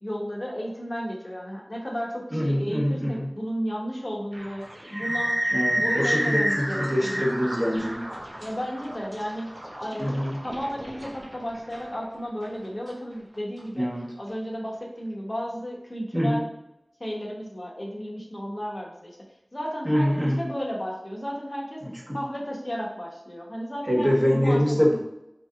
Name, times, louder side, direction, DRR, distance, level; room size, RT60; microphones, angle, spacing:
voice 1, 0.0-4.6 4.9-5.4 5.7-7.3 8.4-9.5 9.8-13.9 14.2-16.5 17.0-19.2 19.5-21.8 22.1-24.8, equal, 45° left, -2 dB, 1.0 m, -33 dB
voice 2, 2.3-3.3 5.5-8.0 10.0-10.4 13.7-14.1 16.1-16.4 19.8-20.4 21.8-21.9 23.9-25.0, equal, 25° right, -5 dB, 1.4 m, -24 dB
sound 1, 4.3-13.6, equal, 60° right, 0.8 m, -30 dB
4.3 x 2.8 x 2.4 m, 0.85 s
wide cardioid pair, 50°, 0 cm